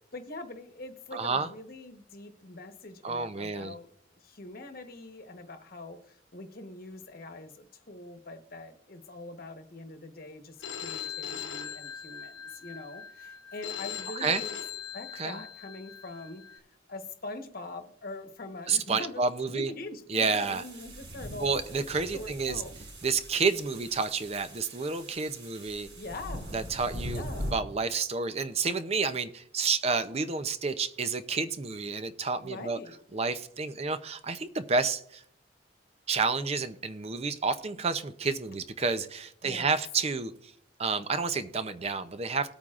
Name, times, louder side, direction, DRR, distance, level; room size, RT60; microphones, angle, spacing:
voice 1, 0.1-3.9 4.1-14.5 14.9-19.2 19.5-21.5 22.1-22.9 26.0-26.5 27.1-27.5 32.4-33.0 39.4-39.7, left 2 dB, 55° left, 7 dB, 1.1 m, -43 dB
voice 2, 1.1-1.5 3.0-3.7 14.2-14.4 15.2-15.4 18.7-19.7 20.1-20.6 21.4-22.6 23.0-25.9 26.5-32.8 33.1-35.2 36.1-40.3 40.8-42.5, right 4 dB, 35° right, 11 dB, 0.6 m, -30 dB
Telephone, 10.6-16.6, left 8 dB, 80° left, 1.0 m, -40 dB
sound 1, 20.2-27.5, equal, 85° right, 5.0 m, -41 dB
19.0 x 8.8 x 2.5 m, 0.68 s
head